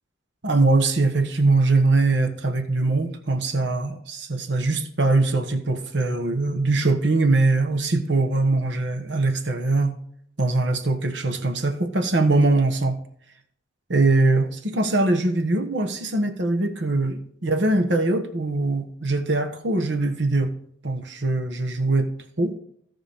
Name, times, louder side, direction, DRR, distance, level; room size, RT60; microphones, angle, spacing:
voice 1, 0.4-10.0 10.4-13.0 13.9-20.5 20.8-22.1 22.4-22.5, right 2 dB, 65° right, 7 dB, 1.2 m, -22 dB
16.5 x 5.9 x 3.5 m, 0.68 s
head